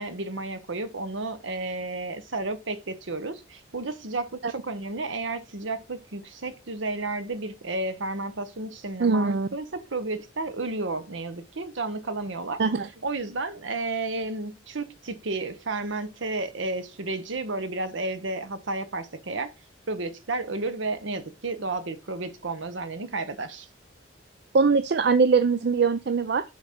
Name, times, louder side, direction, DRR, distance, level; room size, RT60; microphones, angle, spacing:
voice 1, 0.0-12.6 13.0-19.5 19.9-23.7, right 2 dB, 70° right, 1.0 m, -32 dB
voice 2, 9.0-9.5 12.6-12.9 24.5-26.4, right 4 dB, 55° right, 0.4 m, -22 dB
6.6 x 4.1 x 5.0 m
head